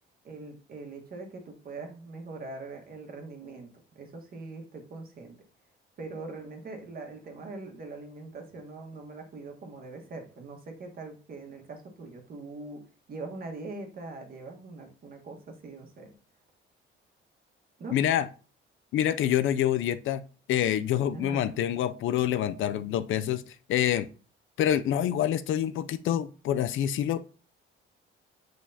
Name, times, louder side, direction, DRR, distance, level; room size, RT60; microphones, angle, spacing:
voice 1, 0.2-3.7 3.9-5.3 6.0-12.8 13.1-16.1 17.8-18.0 21.1-21.5, right 3 dB, 45° right, 2 dB, 1.5 m, -42 dB
voice 2, 17.9-18.3 18.9-20.2 20.5-24.1 24.6-27.2, left 11 dB, 70° left, 12 dB, 0.5 m, -26 dB
7.7 x 5.1 x 2.8 m, 0.39 s
cardioid pair, 135°, 21 cm